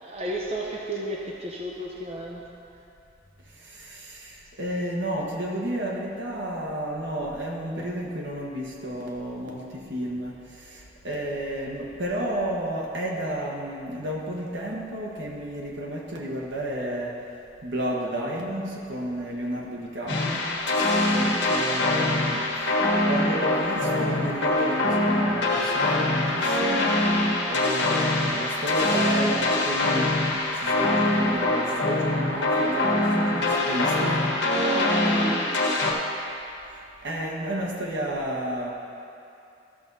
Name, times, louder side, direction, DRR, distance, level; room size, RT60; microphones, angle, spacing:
voice 1, 0.0-2.5 21.5-21.8 34.5-35.7, right 1 dB, 35° right, -2 dB, 0.7 m, -33 dB
voice 2, 3.5-17.2 17.6-20.4 21.1-22.7 23.1-26.9 27.5-30.2 30.5-34.3 37.0-38.7, right 1 dB, 75° right, -2 dB, 1.5 m, -32 dB
sound 1, 20.1-35.9, left 2 dB, 70° left, 1.4 m, -24 dB
13.5 x 6.3 x 4.1 m, 2.7 s
head